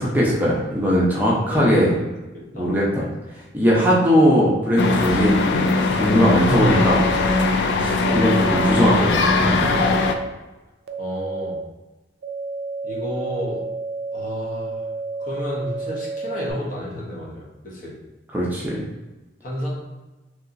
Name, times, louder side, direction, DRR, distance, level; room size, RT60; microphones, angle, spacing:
voice 1, 0.0-1.9 2.5-3.1 3.5-5.4 5.9-7.0 7.8-9.9 18.3-18.8, equal, 10° right, -5 dB, 0.6 m, -19 dB
voice 2, 1.3-2.1 2.3-2.7 7.7-8.1 11.0-11.6 12.8-13.6 14.1-14.8 15.2-18.0 19.4-19.7, equal, 50° left, -4 dB, 0.9 m, -32 dB
sound 1, 4.8-10.1, left 3 dB, 65° left, 0.3 m, -20 dB
sound 2, 6.7-7.4 8.0-8.8 9.6-10.2 10.9-11.6 12.2-16.5, right 3 dB, 60° right, 0.3 m, -30 dB
3.1 x 2.8 x 2.5 m, 1.1 s
head